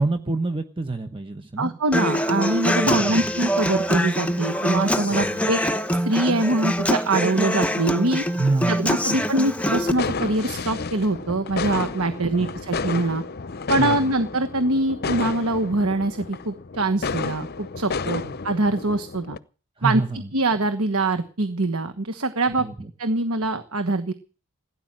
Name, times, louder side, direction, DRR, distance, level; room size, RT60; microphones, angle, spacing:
voice 1, 0.0-1.7 2.8-3.3 5.1-5.5 8.4-9.3 12.4-12.5 13.8-14.0 19.8-20.3 22.6-22.9, right 3 dB, 25° right, 7 dB, 1.0 m, -27 dB
voice 2, 1.6-5.6 6.0-8.2 8.7-13.2 13.7-19.4 19.8-20.0 20.3-22.7 23.0-24.1, right 2 dB, 75° right, 9 dB, 1.3 m, -23 dB
Human voice / Acoustic guitar, 1.9-9.9, equal, 5° left, 1.0 m, -24 dB
sound 1, 9.6-19.4, left 4 dB, 45° left, 0.7 m, -31 dB
16.5 x 10.0 x 7.5 m, 0.38 s
head